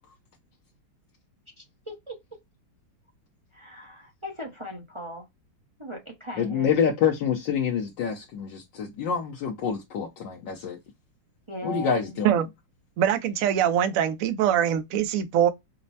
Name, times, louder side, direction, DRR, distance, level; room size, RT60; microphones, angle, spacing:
voice 1, 1.6-2.2 3.5-5.3 5.8-6.8 11.5-12.2, left 1 dB, 35° right, 0.4 m, -39 dB
voice 2, 6.4-10.8 11.6-12.4, left 7 dB, 70° left, 1.4 m, -27 dB
voice 3, 13.0-15.5, right 10 dB, 70° right, 0.8 m, -23 dB
5.4 x 2.1 x 2.6 m
omnidirectional pair, 2.2 m